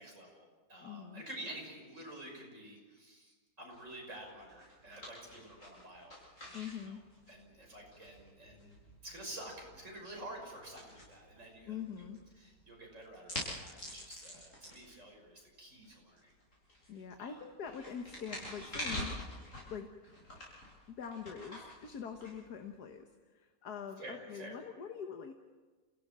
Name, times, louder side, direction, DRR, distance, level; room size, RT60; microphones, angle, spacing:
voice 1, 0.0-6.6 6.8-7.0 7.3-8.8 9.0-12.0 12.4-16.3 17.2-17.4 24.0-24.6, right 1 dB, 50° right, 0 dB, 6.5 m, -49 dB
voice 2, 0.8-1.2 6.5-7.0 11.7-12.2 16.9-19.2 19.7-19.9 20.9-25.3, left 7 dB, 70° left, 5 dB, 1.9 m, -44 dB
sound 1, 3.7-22.9, left 1 dB, 50° left, 8.4 m, -48 dB
29.0 x 17.0 x 7.5 m, 1.4 s
omnidirectional pair, 1.7 m